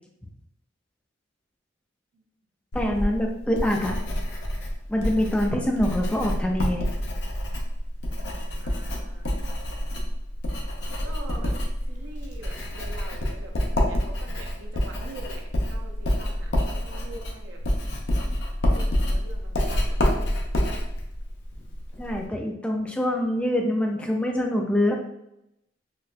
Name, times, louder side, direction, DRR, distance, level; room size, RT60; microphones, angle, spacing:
Writing, 2.7-22.3, equal, 65° left, 0.6 m, -28 dB
voice 1, 2.7-4.0 4.9-6.9 22.0-25.0, left 1 dB, 5° left, 1 dB, 0.3 m, -25 dB
voice 2, 8.6-9.5 11.0-11.6 11.9-17.6 18.7-20.0, right 2 dB, 85° right, 1 dB, 0.6 m, -44 dB
3.9 x 2.2 x 2.4 m, 0.83 s
head